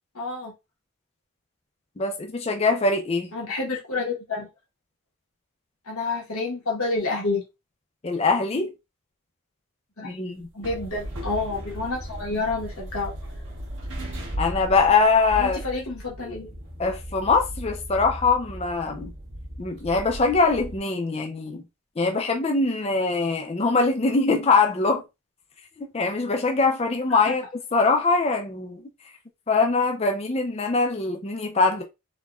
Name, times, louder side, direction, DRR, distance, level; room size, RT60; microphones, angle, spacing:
voice 1, 0.1-0.5 3.3-4.5 5.9-7.4 10.0-10.1 10.5-13.1 15.4-16.5 27.1-27.4, left 3 dB, 80° left, 1.1 m, -29 dB
voice 2, 2.0-3.3 8.0-8.7 10.0-10.5 14.4-15.6 16.8-19.1 19.6-21.6 22.0-25.0 25.8-27.4 27.7-28.8 29.5-31.8, left 4 dB, 30° left, 0.4 m, -22 dB
sound 1, 10.4-20.8, equal, 55° right, 1.2 m, -36 dB
4.1 x 2.2 x 2.3 m
head